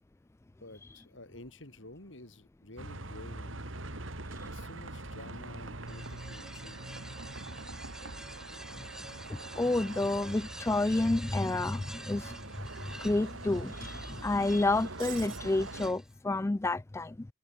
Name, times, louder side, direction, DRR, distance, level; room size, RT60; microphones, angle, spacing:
voice 1, 0.6-3.7 4.4-6.8, left 1 dB, 70° left, 5.3 m, -50 dB
Bus, 2.8-15.9, right 2 dB, 80° right, 3.4 m, -43 dB
sound 1, 5.9-16.1, right 1 dB, 5° right, 1.4 m, -49 dB
voice 2, 9.3-12.4 12.9-17.3, left 2 dB, 15° left, 0.3 m, -30 dB
head